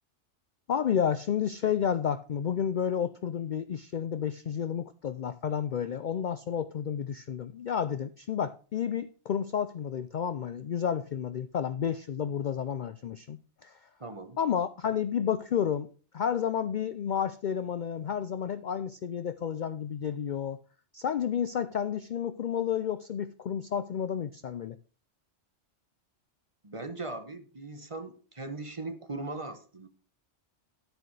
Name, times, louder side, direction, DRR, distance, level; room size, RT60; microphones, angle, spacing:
voice 1, 0.7-13.8 14.4-15.9 16.1-20.6 20.9-24.8, left 8 dB, 55° left, 11 dB, 0.5 m, -31 dB
voice 2, 14.0-14.4 26.6-29.9, right 2 dB, 30° right, 7 dB, 1.1 m, -39 dB
10.0 x 9.2 x 3.2 m, 0.38 s
omnidirectional pair, 1.2 m